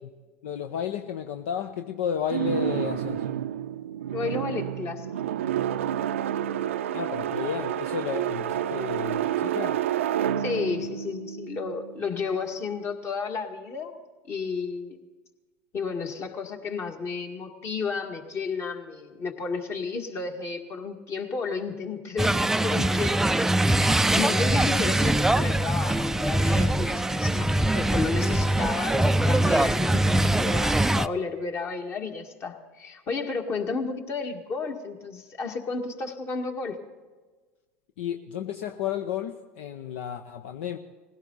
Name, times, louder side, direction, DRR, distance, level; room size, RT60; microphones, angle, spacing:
voice 1, 0.4-3.2 6.9-9.8 38.0-40.8, left 8 dB, 70° left, 7 dB, 0.7 m, -32 dB
sound 1, 2.3-12.3, right 10 dB, 75° right, 0.5 m, -29 dB
voice 2, 4.1-5.4 10.4-14.0 14.3-15.0 15.7-23.2 23.5-36.8, left 4 dB, 40° left, 4 dB, 2.0 m, -32 dB
sound 2, 22.2-31.1, right 1 dB, 5° right, 0.4 m, -23 dB
20.5 x 16.5 x 4.1 m, 1.3 s
hypercardioid pair, 80°, 7 cm